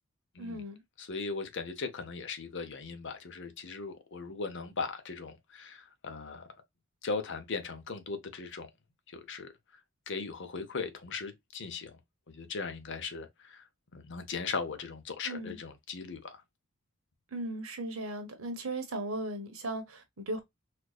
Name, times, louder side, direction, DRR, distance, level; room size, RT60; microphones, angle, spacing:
voice 1, 0.4-0.8 15.2-15.6 17.3-20.4, right 1 dB, 75° right, 1.2 m, -37 dB
voice 2, 1.0-6.5 7.0-8.7 9.1-9.5 10.1-12.0 12.3-13.6 13.9-16.4, left 4 dB, 55° left, 0.8 m, -38 dB
4.5 x 2.4 x 2.3 m
head